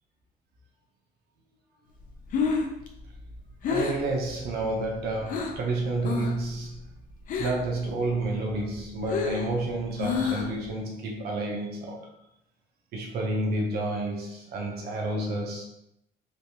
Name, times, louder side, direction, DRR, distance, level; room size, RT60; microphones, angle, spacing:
Breathing, 2.1-5.7 6.0-6.5 6.7-7.8 8.1-10.7, left 5 dB, 55° left, 0.5 m, -30 dB
voice 1, 3.6-6.8 7.4-12.1 12.9-15.6, right 2 dB, 70° right, 0 dB, 0.7 m, -30 dB
3.2 x 3.1 x 2.8 m, 0.81 s
cardioid pair, 110°, 17 cm